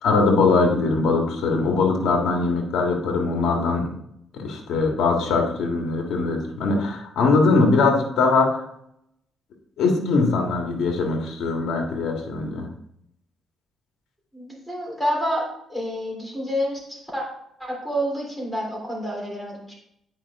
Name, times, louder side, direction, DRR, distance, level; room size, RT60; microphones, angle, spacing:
voice 1, 0.0-3.9 4.3-8.6 9.8-12.7, left 3 dB, 80° left, 2 dB, 1.6 m, -21 dB
voice 2, 14.3-17.2 17.6-19.7, equal, ahead, -3 dB, 3.3 m, -28 dB
8.9 x 5.1 x 3.6 m, 0.74 s
cardioid pair, 90°, 0 cm